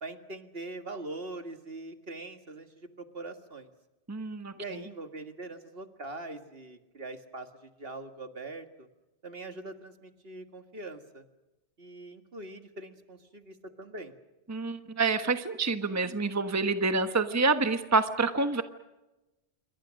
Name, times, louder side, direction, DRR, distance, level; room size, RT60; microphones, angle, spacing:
voice 1, 0.0-3.7 4.6-8.9 9.2-11.2 11.8-14.1, right 2 dB, 55° right, 8 dB, 2.1 m, -42 dB
voice 2, 4.1-4.8 14.5-18.6, right 3 dB, 15° right, 9 dB, 1.1 m, -27 dB
28.0 x 24.0 x 6.4 m, 1.0 s
omnidirectional pair, 1.2 m